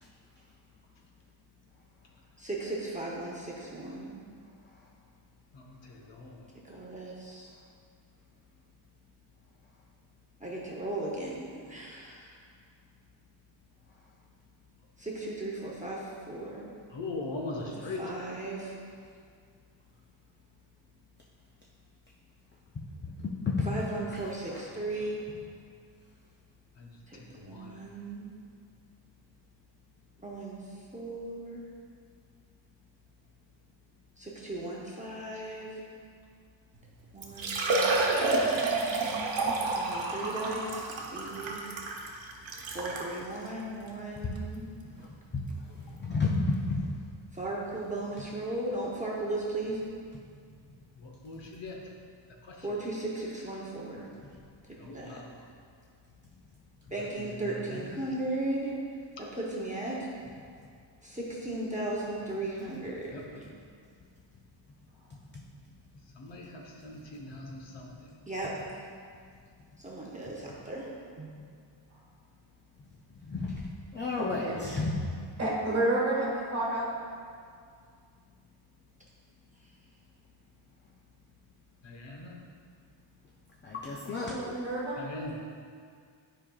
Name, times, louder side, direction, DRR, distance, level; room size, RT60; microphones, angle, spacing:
voice 1, 2.4-4.2 6.7-7.5 10.4-12.4 15.0-16.7 17.6-18.8 23.6-25.2 27.1-28.4 30.2-31.6 34.2-35.8 37.1-37.9 39.7-41.6 42.7-44.7 47.3-49.8 52.6-54.1 54.6-55.2 56.9-58.8 59.2-60.1 61.0-63.4 68.3-68.6 69.8-70.9 71.2-71.3, right 2 dB, 15° right, -5 dB, 0.7 m, -36 dB
voice 2, 5.5-6.4 16.9-18.0 26.8-26.9 27.3-27.8 51.0-51.8 52.5-52.6 54.8-55.3 57.7-57.8 63.1-63.2 66.2-67.9 81.8-82.3 85.0-85.3, left 2 dB, 70° left, 0 dB, 1.0 m, -40 dB
voice 3, 23.2-23.7 45.3-45.4 46.0-46.8 65.3-65.4 73.3-75.0 83.6-84.3, left 3 dB, 25° left, -2 dB, 0.3 m, -31 dB
Liquid, 36.8-36.9 37.2-43.1 43.8-43.9 44.4-44.5 46.1-46.2 46.4-46.5, right 3 dB, 75° right, 1.0 m, -29 dB
voice 4, 74.2-74.5 75.4-76.9 84.1-85.0, right 1 dB, 35° right, -5 dB, 1.5 m, -30 dB
10.0 x 5.0 x 2.3 m, 2.2 s
wide cardioid pair, 175°, 46 cm